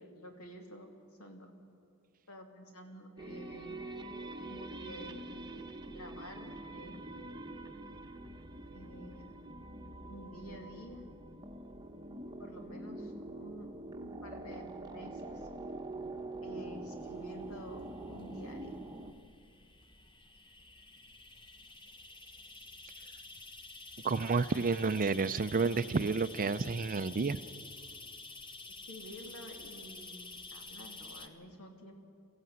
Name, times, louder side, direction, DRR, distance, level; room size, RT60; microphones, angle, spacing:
voice 1, 0.0-1.5 2.3-3.8 4.5-5.3 5.9-7.0 8.7-9.4 10.1-11.0 12.4-15.5 16.4-18.8 28.8-31.9, equal, 70° left, 3 dB, 2.8 m, -50 dB
sound 1, 3.2-19.1, right 2 dB, 20° right, 1.0 m, -45 dB
sound 2, 16.9-31.3, left 3 dB, 20° left, 1.2 m, -50 dB
voice 2, 24.0-27.4, right 4 dB, 40° right, 13 dB, 0.5 m, -30 dB
22.5 x 14.5 x 9.4 m, 2.3 s
head